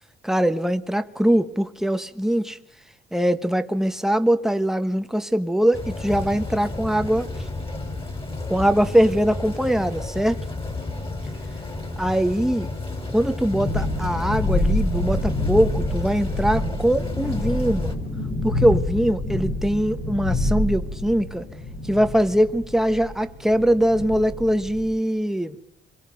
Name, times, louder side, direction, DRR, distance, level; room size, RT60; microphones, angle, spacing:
voice 1, 0.2-2.6 3.1-7.3 8.5-10.4 12.0-12.7 13.1-18.0 18.4-21.5 21.8-25.6, equal, ahead, 9 dB, 1.3 m, -22 dB
sound 1, 5.7-17.9, left 2 dB, 25° left, 4.5 m, -32 dB
Thunderstorm, 13.4-24.9, left 1 dB, 75° left, 8.0 m, -27 dB
26.5 x 22.5 x 5.4 m, 0.80 s
cardioid pair, 90°, 20 cm